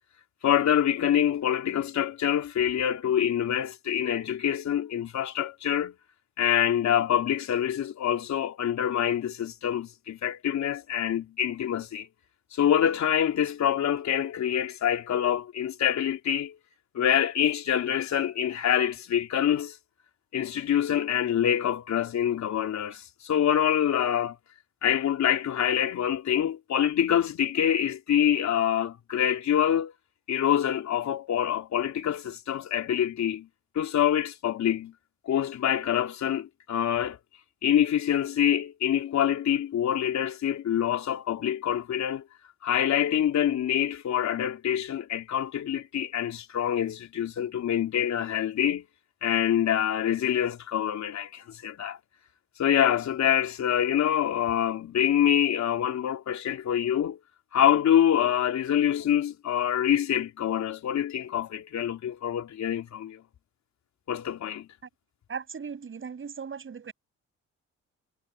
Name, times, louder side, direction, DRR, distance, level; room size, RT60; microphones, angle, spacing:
voice 1, 0.4-5.9 6.4-12.1 12.5-16.5 16.9-19.8 20.3-24.4 24.8-29.9 30.3-33.5 33.8-34.9 35.3-37.2 37.6-42.2 42.6-48.8 49.2-52.0 52.6-57.2 57.5-63.2 64.1-64.7, left 10 dB, 65° left, 3.7 m, -26 dB
voice 2, 65.3-66.9, right 6 dB, 40° right, 6.9 m, -37 dB
cardioid pair, 90°, 30 cm